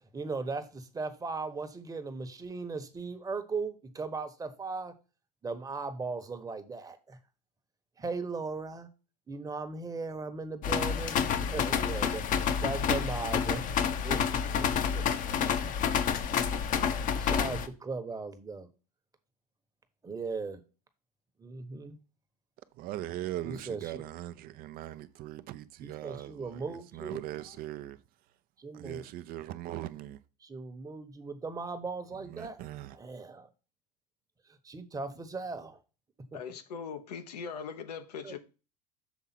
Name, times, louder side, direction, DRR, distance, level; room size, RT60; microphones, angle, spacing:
voice 1, 0.1-4.9 5.4-7.2 8.0-8.9 9.3-12.2 12.6-13.7 14.0-14.7 14.9-15.0 17.2-18.7 20.0-20.6 21.4-22.0 23.4-24.1 25.8-27.2 28.6-29.0 30.4-32.6 32.9-33.5 34.6-35.8 36.3-36.4 38.2-38.4, right 4 dB, 20° right, 1.1 m, -38 dB
sound 1, 10.6-17.7, left 7 dB, 40° left, 0.8 m, -29 dB
voice 2, 22.8-28.0 28.7-30.2 32.3-33.0, right 14 dB, 50° right, 0.6 m, -40 dB
voice 3, 36.3-38.4, left 6 dB, 85° left, 1.0 m, -40 dB
7.1 x 3.6 x 5.9 m
hypercardioid pair, 90°, 20 cm